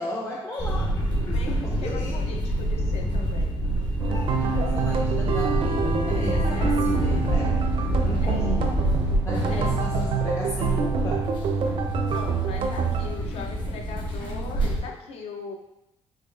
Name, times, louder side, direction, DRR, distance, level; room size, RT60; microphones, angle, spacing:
voice 1, 0.0-1.0 1.3-2.2 4.1-7.6 8.0-8.9 9.2-11.3, left 2 dB, 25° left, -2 dB, 0.4 m, -34 dB
sound 1, 0.6-14.8, equal, 45° left, 1.2 m, -27 dB
voice 2, 1.2-3.6 6.3-6.8 8.2-8.4 9.5-9.8 12.1-15.6, left 4 dB, 70° left, 3 dB, 0.6 m, -39 dB
sound 2, 4.0-13.1, right 6 dB, 55° right, 0.4 m, -27 dB
6.1 x 2.4 x 2.4 m, 0.87 s
cardioid pair, 125°, 11 cm